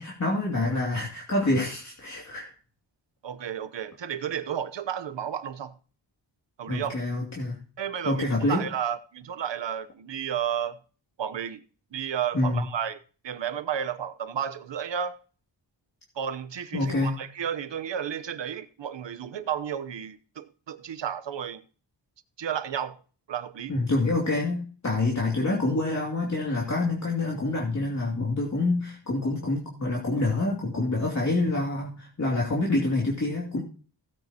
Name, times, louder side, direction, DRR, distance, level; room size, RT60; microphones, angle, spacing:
voice 1, 0.0-2.5 6.7-7.6 8.0-8.6 12.3-12.6 16.7-17.1 23.7-33.6, left 2 dB, 40° left, 2.7 m, -27 dB
voice 2, 3.2-5.7 6.6-6.9 7.8-10.8 11.2-11.6 11.9-13.0 13.2-15.2 16.1-21.6 22.4-23.0 23.3-23.7, right 9 dB, 80° right, 0.9 m, -32 dB
16.5 x 9.3 x 2.9 m
wide cardioid pair, 110°, 44 cm